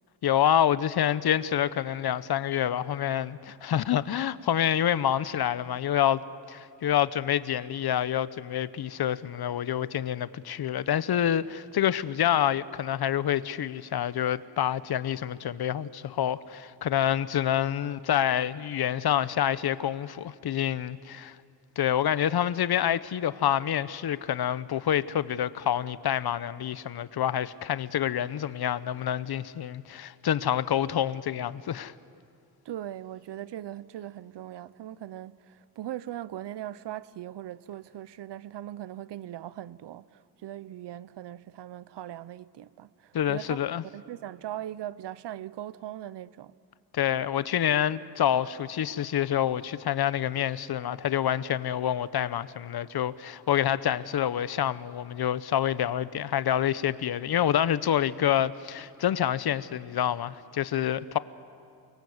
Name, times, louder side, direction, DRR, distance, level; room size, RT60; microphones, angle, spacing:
voice 1, 0.2-6.2 6.5-21.4 21.8-31.9 43.1-43.8 46.9-61.2, left 10 dB, 65° left, 0.8 m, -27 dB
voice 2, 32.6-43.6 43.9-46.5, right 12 dB, 80° right, 0.7 m, -40 dB
28.5 x 24.0 x 7.9 m
wide cardioid pair, 140°, 41 cm